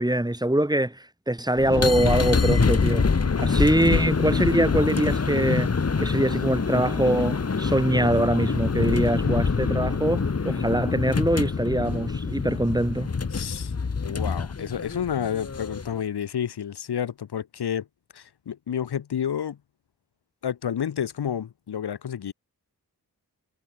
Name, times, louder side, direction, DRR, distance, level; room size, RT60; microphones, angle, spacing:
voice 1, 0.0-3.1 3.4-13.1, right 1 dB, 10° right, 3.2 m, -23 dB
sound 1, 1.6-16.0, left 5 dB, 40° left, 1.4 m, -25 dB
voice 2, 13.3-13.7 14.0-17.9 18.1-19.6 20.4-22.3, left 8 dB, 90° left, 1.2 m, -30 dB
wide cardioid pair, 75°, 38 cm